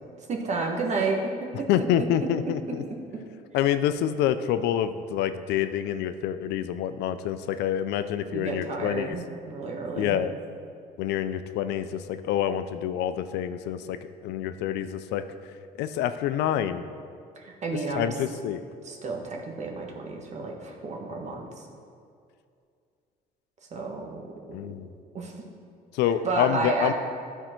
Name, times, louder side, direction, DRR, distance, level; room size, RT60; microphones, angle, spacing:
voice 1, 0.3-1.3 1.6-2.0 8.3-10.2 17.4-18.1 18.8-21.4 23.7-24.2 25.1-25.4 26.2-26.9, right 3 dB, 45° right, 1 dB, 1.5 m, -31 dB
voice 2, 1.7-2.8 3.5-9.2 10.0-10.3 11.0-14.0 14.2-15.2 15.8-16.8 17.9-18.6 24.5-24.9 25.9-26.9, left 10 dB, 85° left, 11 dB, 0.5 m, -27 dB
12.5 x 4.5 x 4.4 m, 2.3 s
cardioid pair, 110°, 17 cm